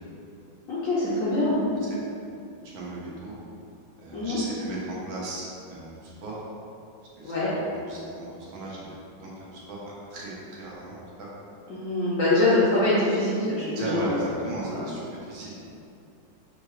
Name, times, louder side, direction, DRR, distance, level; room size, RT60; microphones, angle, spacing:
voice 1, 0.7-1.6 4.1-4.4 7.2-7.5 11.7-14.9, left 2 dB, 65° left, -8 dB, 0.8 m, -24 dB
voice 2, 2.6-3.4 4.0-6.4 7.2-7.4 7.9-8.9 9.2-11.3 13.7-15.7, right 2 dB, 85° right, -6 dB, 1.7 m, -37 dB
5.6 x 2.7 x 3.1 m, 2.6 s
omnidirectional pair, 2.1 m